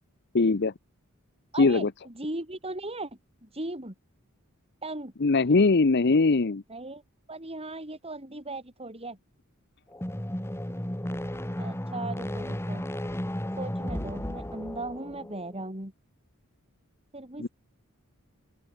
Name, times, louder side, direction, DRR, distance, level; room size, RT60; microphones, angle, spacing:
voice 1, 0.3-0.7 1.6-1.9 5.2-6.6 17.4-17.5, left 3 dB, 50° left, 0.7 m, -21 dB
voice 2, 1.5-3.9 4.8-5.1 6.7-7.0 7.3-9.2 11.6-12.8 13.6-15.9 17.1-17.5, right 2 dB, 30° right, 6.0 m, -38 dB
sound 1, 9.9-15.5, equal, 10° left, 1.7 m, -34 dB
open air
head